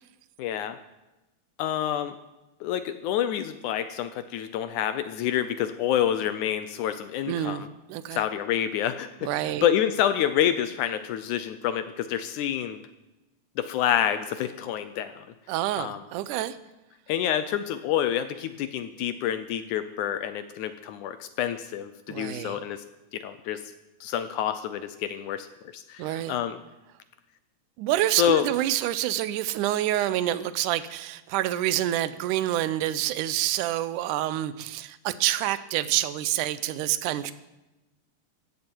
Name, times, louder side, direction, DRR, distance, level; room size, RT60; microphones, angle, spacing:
voice 1, 0.4-0.8 1.6-2.1 2.6-7.7 8.1-9.3 9.6-12.8 13.6-15.3 15.8-16.0 17.1-22.8 23.1-23.6 24.0-25.5 25.7-26.6 28.2-28.5, left 10 dB, 80° left, 11 dB, 1.8 m, -28 dB
voice 2, 7.3-7.6 7.9-8.2 9.2-9.7 15.5-16.6 22.1-22.6 26.0-26.4 27.8-37.3, right 13 dB, 75° right, 14 dB, 2.0 m, -27 dB
15.5 x 15.5 x 4.6 m, 1.0 s
omnidirectional pair, 4.1 m